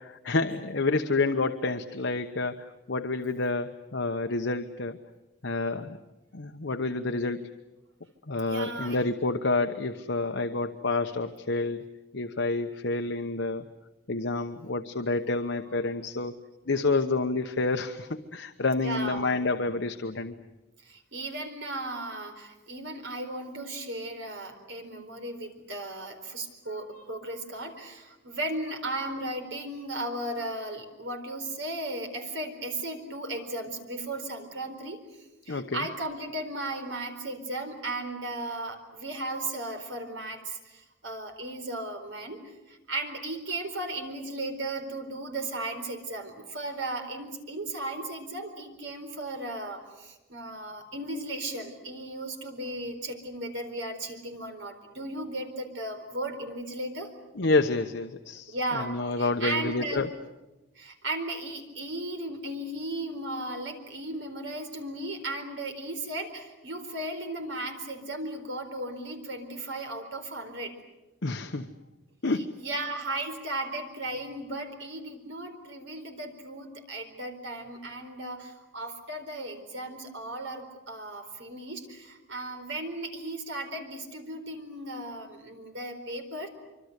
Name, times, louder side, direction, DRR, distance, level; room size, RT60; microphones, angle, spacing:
voice 1, 0.0-5.0 5.4-6.0 6.3-7.5 8.3-11.8 12.1-13.6 14.1-16.3 16.7-20.3 35.5-35.9 57.3-60.1 71.2-71.7 72.2-72.5, left 3 dB, 65° left, 6 dB, 1.0 m, -29 dB
voice 2, 8.4-9.0 18.8-19.3 20.8-35.0 35.5-57.1 58.5-60.1 60.8-70.7 72.6-86.5, right 1 dB, 70° right, 5 dB, 4.4 m, -36 dB
25.5 x 25.0 x 8.2 m, 1.1 s
head